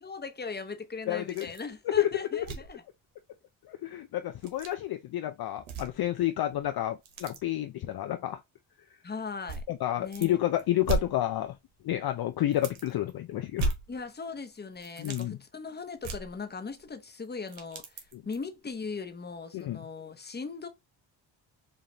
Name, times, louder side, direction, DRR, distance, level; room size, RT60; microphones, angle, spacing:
voice 1, 0.0-2.8 9.0-9.6 10.0-10.4 13.9-20.7, left 4 dB, 20° left, 0.9 m, -39 dB
voice 2, 1.1-1.5 2.0-2.5 3.7-8.4 9.7-11.6 11.8-13.7 15.0-15.4 18.1-18.2 19.5-19.8, left 13 dB, 55° left, 0.5 m, -30 dB
sound 1, 1.3-1.7 2.0-2.1 2.4-2.8 4.3-4.7 5.6-6.2 6.5-7.4 8.3-8.4 9.5-10.3 10.6-11.7 12.1-12.2 12.5-13.1 13.5-14.4 14.7-15.3 16.0-16.9 17.2-18.5 19.0-19.1 19.6-19.7, right 3 dB, 80° right, 1.2 m, -36 dB
5.2 x 2.4 x 2.8 m
cardioid pair, 75°, 47 cm